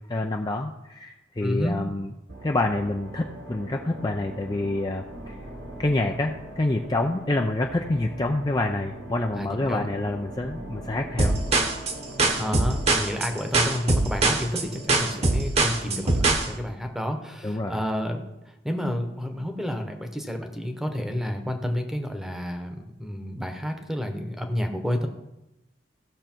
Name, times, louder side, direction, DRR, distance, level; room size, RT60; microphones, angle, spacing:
voice 1, 0.1-2.1 2.4-5.4 5.8-11.4 17.4-17.8, left 2 dB, 20° left, 2 dB, 0.5 m, -27 dB
voice 2, 1.4-1.8 9.4-9.9 12.4-18.2 18.6-25.1, equal, ahead, 5 dB, 1.0 m, -30 dB
sound 1, 2.3-15.6, right 1 dB, 75° right, 2.0 m, -41 dB
sound 2, 11.2-16.5, right 2 dB, 35° right, 1.1 m, -22 dB
15.5 x 6.5 x 4.5 m, 0.94 s
head